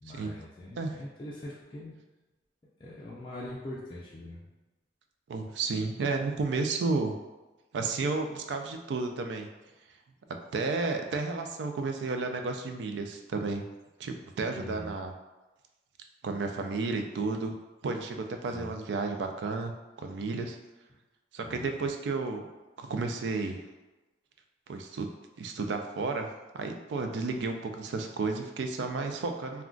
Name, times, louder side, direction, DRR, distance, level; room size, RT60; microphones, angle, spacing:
voice 1, 0.0-2.0 2.8-4.4 14.5-15.0 18.5-18.7 21.4-21.9, left 1 dB, 25° left, -6 dB, 0.3 m, -42 dB
voice 2, 5.3-7.1 7.7-9.5 10.5-13.6 14.0-15.1 16.2-17.6 17.8-19.7 20.0-20.6 21.3-22.4 22.8-23.6 24.7-25.1 25.4-26.3 26.5-29.6, right 3 dB, 80° right, 5 dB, 0.3 m, -32 dB
2.3 x 2.2 x 3.6 m, 1.1 s
head